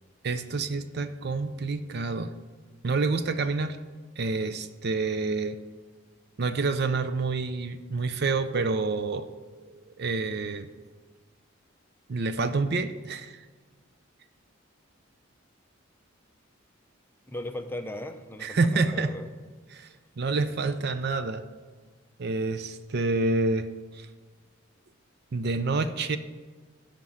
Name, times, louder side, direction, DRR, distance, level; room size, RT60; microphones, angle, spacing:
voice 1, 0.2-2.3 2.8-3.8 4.2-5.6 6.4-9.3 9.7-10.7 12.1-13.4 18.4-19.2 19.7-19.9 20.2-21.4 22.2-23.7 23.9-24.1 25.3-26.2, right 3 dB, 50° right, 11 dB, 0.5 m, -28 dB
voice 2, 17.3-19.3, left 1 dB, 10° left, 6 dB, 0.6 m, -37 dB
12.5 x 5.2 x 6.3 m, 1.4 s
head